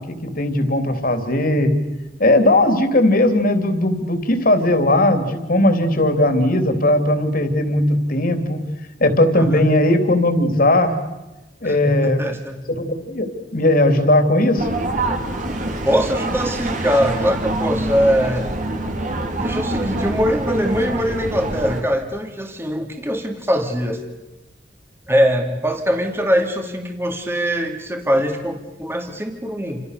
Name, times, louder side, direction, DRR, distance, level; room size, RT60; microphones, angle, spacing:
voice 1, 0.0-1.7 2.2-8.6 9.0-11.0 11.6-12.2 12.8-14.7, left 1 dB, 55° left, 7 dB, 3.4 m, -18 dB
voice 2, 9.3-9.7 11.6-12.6 15.8-18.5 19.3-24.0 25.1-29.8, equal, 15° right, 4 dB, 2.6 m, -22 dB
sound 1, 14.6-21.8, right 1 dB, 45° right, 3.3 m, -25 dB
29.5 x 27.0 x 6.8 m, 1.0 s
head